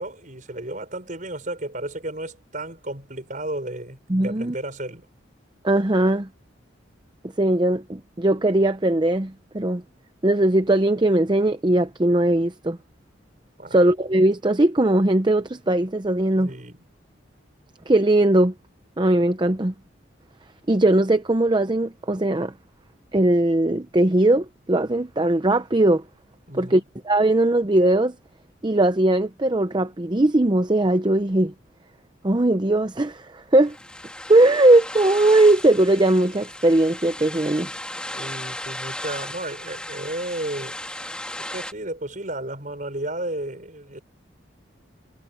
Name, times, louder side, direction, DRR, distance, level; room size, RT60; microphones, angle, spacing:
voice 1, 0.0-5.1 13.6-13.8 16.4-16.8 26.5-26.9 38.2-40.8 41.5-44.0, right 1 dB, 40° right, 5.5 m, -33 dB
voice 2, 4.1-4.5 5.6-6.3 7.4-9.8 10.2-12.8 13.7-16.5 17.9-18.5 19.0-19.7 20.7-22.5 23.1-26.0 26.5-28.1 28.6-31.5 32.2-33.8 34.3-37.7, right 1 dB, 25° right, 0.7 m, -19 dB
sound 1, 33.6-41.7, left 1 dB, 5° left, 2.3 m, -36 dB
head